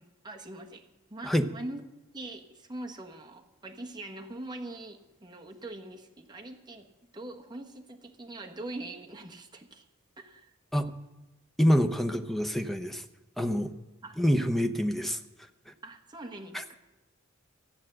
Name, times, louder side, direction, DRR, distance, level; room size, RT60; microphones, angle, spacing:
voice 1, 0.0-1.8 2.1-6.9 7.1-9.9 10.2-10.5 14.0-14.2 15.8-16.7, right 2 dB, 20° right, 2 dB, 1.3 m, -43 dB
voice 2, 11.6-13.0 13.4-13.7 14.2-15.2, equal, ahead, 6 dB, 0.7 m, -26 dB
14.0 x 8.9 x 7.7 m, 1.0 s
head